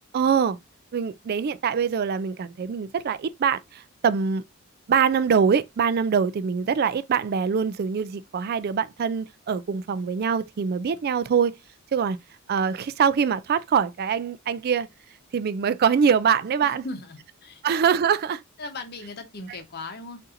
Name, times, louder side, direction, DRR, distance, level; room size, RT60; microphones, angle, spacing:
voice 1, 0.1-0.6 0.9-4.4 4.9-11.5 11.9-12.2 12.5-14.9 15.3-16.8 17.6-18.4, right 6 dB, 45° right, 0.3 m, -23 dB
voice 2, 16.6-17.6 18.6-20.2, left 2 dB, 45° left, 0.9 m, -38 dB
4.1 x 2.6 x 3.7 m
head